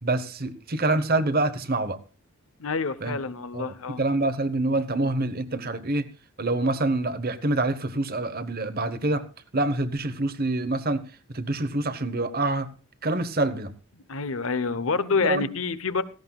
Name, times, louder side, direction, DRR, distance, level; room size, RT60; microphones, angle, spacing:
voice 1, 0.0-2.0 3.0-3.2 3.5-6.1 6.4-9.2 9.5-11.0 11.3-12.7 13.0-13.7 15.2-15.4, right 2 dB, 40° right, 12 dB, 1.0 m, -26 dB
voice 2, 2.6-4.0 14.1-16.0, left 4 dB, 65° left, 14 dB, 0.9 m, -27 dB
17.0 x 15.5 x 2.3 m, 0.35 s
head